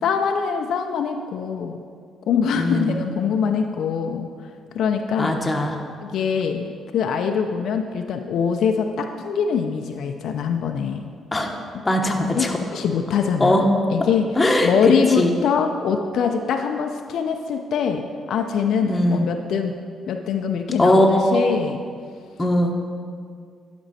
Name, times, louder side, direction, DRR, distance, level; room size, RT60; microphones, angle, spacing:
voice 1, 0.0-1.8 2.3-4.3 4.7-5.3 6.0-11.1 12.3-13.6 13.9-14.3 14.6-18.0 18.3-19.7 20.1-21.8, left 6 dB, 70° left, 5 dB, 0.5 m, -23 dB
voice 2, 2.6-3.0 5.2-5.7 11.3-11.5 11.8-12.6 13.4-13.6 14.4-14.7 15.2-15.3 18.9-19.2 20.8-21.5 22.4-22.7, left 1 dB, 15° left, 2 dB, 1.0 m, -19 dB
11.0 x 5.2 x 4.1 m, 2.1 s
cardioid pair, 90°, 0 cm